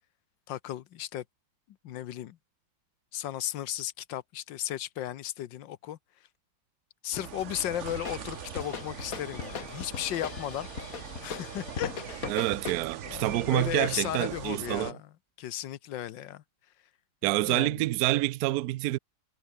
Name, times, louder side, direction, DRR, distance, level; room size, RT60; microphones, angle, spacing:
voice 1, 0.5-1.2 1.8-2.4 3.1-6.0 7.0-10.7 11.2-12.4 13.1-15.1 15.4-16.4 17.2-17.9, left 12 dB, 75° left, 1.6 m, -35 dB
sound 1, 7.1-14.9, right 8 dB, 50° right, 1.0 m, -42 dB
sound 2, 7.9-12.8, left 7 dB, 50° left, 1.8 m, -39 dB
voice 2, 12.3-14.9 17.2-19.0, right 17 dB, 75° right, 0.9 m, -27 dB
omnidirectional pair, 2.1 m